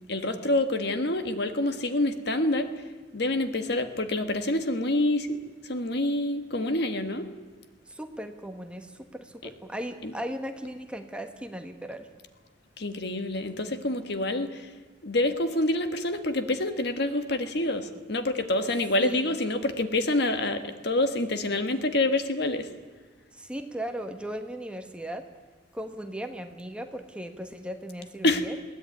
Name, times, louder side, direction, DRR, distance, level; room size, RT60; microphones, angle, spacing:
voice 1, 0.1-2.7 3.1-7.3 10.0-10.1 12.8-14.7 15.0-22.7 28.2-28.4, left 1 dB, 60° left, 8 dB, 1.7 m, -27 dB
voice 2, 7.9-12.1 19.0-19.4 23.3-25.3 25.7-28.6, equal, 5° right, 6 dB, 1.3 m, -37 dB
21.5 x 17.0 x 9.5 m, 1.3 s
head